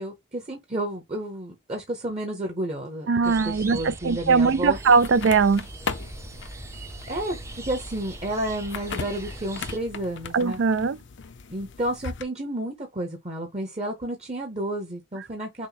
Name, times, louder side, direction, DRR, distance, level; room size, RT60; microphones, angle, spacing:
voice 1, 0.0-5.0 7.1-10.6 11.5-15.7, right 1 dB, 35° right, 1.0 m, -31 dB
voice 2, 3.1-5.6 10.3-11.0, right 5 dB, 70° right, 0.4 m, -20 dB
sound 1, 3.2-9.8, right 2 dB, 15° right, 0.6 m, -40 dB
sound 2, 4.7-12.2, left 5 dB, 65° left, 0.6 m, -38 dB
6.2 x 2.1 x 4.0 m
head